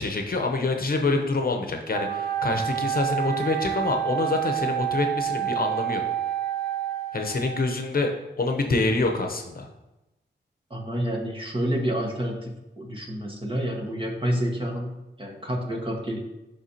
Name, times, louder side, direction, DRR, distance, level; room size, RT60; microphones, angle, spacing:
voice 1, 0.0-6.0 7.1-9.7, left 3 dB, 50° left, 4 dB, 0.9 m, -26 dB
Wind instrument woodwind instrument, 1.9-7.8, right 11 dB, 60° right, 0.7 m, -28 dB
voice 2, 10.7-16.2, equal, 30° right, 0 dB, 1.6 m, -29 dB
10.5 x 3.5 x 2.9 m, 0.98 s
cardioid pair, 60°, 19 cm